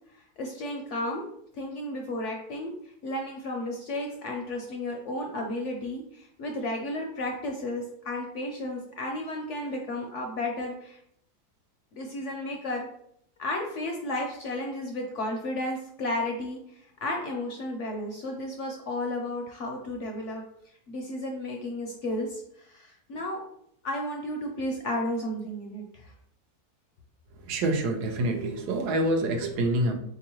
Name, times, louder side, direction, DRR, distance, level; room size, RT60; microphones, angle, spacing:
voice 1, 0.4-1.2 1.6-2.7 3.0-11.0 11.9-12.9 13.4-16.6 17.0-20.4 20.9-23.4 23.8-26.1, left 1 dB, 70° left, 0.7 m, -33 dB
voice 2, 27.5-29.9, right 1 dB, 85° right, 1.2 m, -26 dB
3.7 x 3.0 x 2.9 m
omnidirectional pair, 1.7 m